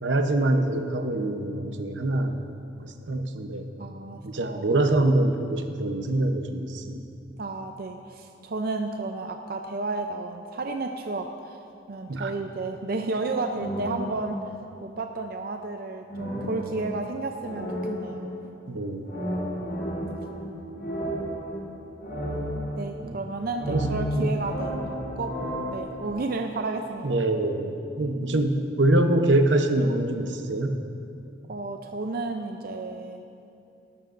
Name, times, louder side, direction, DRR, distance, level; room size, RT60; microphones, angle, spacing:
voice 1, 0.0-2.4 2.8-3.6 4.2-7.0 12.1-12.3 16.4-16.5 18.7-19.1 23.0-23.2 23.7-23.9 24.2-24.3 27.0-30.8, right 1 dB, 85° right, 6 dB, 0.9 m, -25 dB
voice 2, 3.8-4.6 7.4-11.6 11.9-14.5 14.8-18.3 22.8-24.7 25.2-25.3 25.7-27.2 31.5-33.2, right 3 dB, 55° right, 4 dB, 0.5 m, -32 dB
sound 1, 13.5-14.8 16.1-18.6 19.0-23.2 23.5-26.1, equal, 55° left, 2.6 m, -32 dB
18.5 x 12.5 x 2.6 m, 2.6 s
head